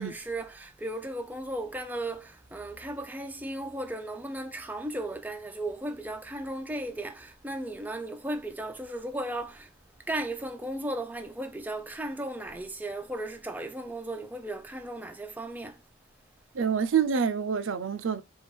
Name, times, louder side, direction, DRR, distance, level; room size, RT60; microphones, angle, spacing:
voice 1, 0.0-9.7 10.1-15.8, right 1 dB, 10° right, 0.4 m, -36 dB
voice 2, 16.5-18.2, right 7 dB, 80° right, 0.5 m, -27 dB
4.5 x 2.4 x 4.3 m
head